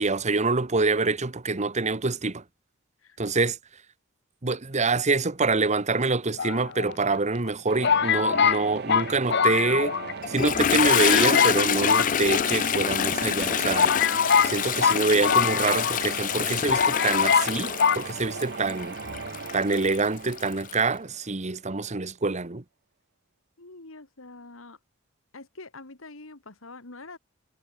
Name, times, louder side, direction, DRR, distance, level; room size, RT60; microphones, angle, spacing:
voice 1, 0.0-2.4 3.2-3.6 4.4-9.9 10.3-14.0 14.4-19.0 19.5-22.6, right 3 dB, 35° right, 1.2 m, -26 dB
sound 1, 6.4-7.1 7.8-10.1 10.4-10.5 10.8-11.6 11.9-12.8 13.4-13.5 13.7-16.0 16.3-16.4 16.7-17.5 17.8-18.0, left 7 dB, 55° left, 1.1 m, -23 dB
sound 2, 7.7-21.5, right 4 dB, 55° right, 1.0 m, -38 dB
Toilet flush, 10.2-20.8, left 9 dB, 40° left, 0.4 m, -27 dB
voice 2, 23.6-24.8 25.3-27.2, left 3 dB, 70° left, 2.2 m, -45 dB
head